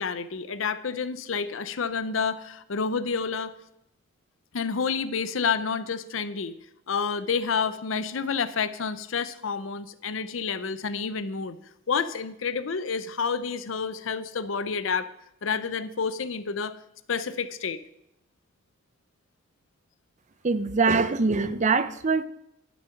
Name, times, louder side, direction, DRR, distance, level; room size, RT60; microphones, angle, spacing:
voice 1, 0.0-3.5 4.5-6.5 6.9-11.6 11.9-15.1 15.4-16.7 17.1-17.8, left 5 dB, 85° left, 14 dB, 0.7 m, -29 dB
voice 2, 20.4-22.2, right 4 dB, 40° right, 13 dB, 0.6 m, -23 dB
12.0 x 7.3 x 5.8 m, 0.79 s
head